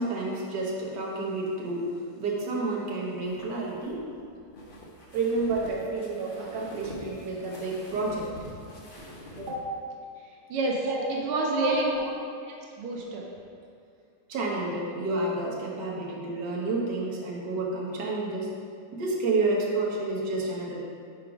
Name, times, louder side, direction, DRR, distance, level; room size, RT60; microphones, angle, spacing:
voice 1, 0.0-4.1 5.1-8.3 9.4-9.6 10.8-11.0 11.6-12.0 14.3-18.5 18.9-20.8, right 2 dB, 55° right, -3 dB, 1.6 m, -30 dB
sound 1, 3.2-9.6, left 1 dB, 70° left, 0.5 m, -45 dB
voice 2, 10.2-11.8 12.5-13.3, right 2 dB, 85° right, -1 dB, 1.7 m, -29 dB
5.9 x 4.6 x 4.9 m, 2.4 s
omnidirectional pair, 2.4 m